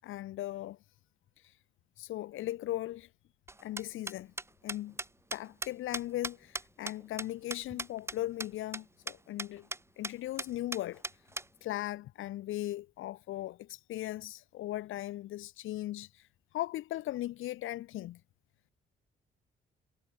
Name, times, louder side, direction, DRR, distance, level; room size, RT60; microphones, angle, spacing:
voice 1, 0.0-0.8 2.0-3.1 3.6-4.3 4.6-5.0 5.3-9.7 10.0-11.0 11.6-16.1 16.5-18.2, left 15 dB, 85° left, 3.4 m, -38 dB
sound 1, 3.5-8.1 8.4-8.5 8.7-8.8 9.1-9.2 9.4-9.8 10.0-10.1 10.4-11.4, right 2 dB, 15° right, 2.9 m, -37 dB
cardioid pair, 90°, 20 cm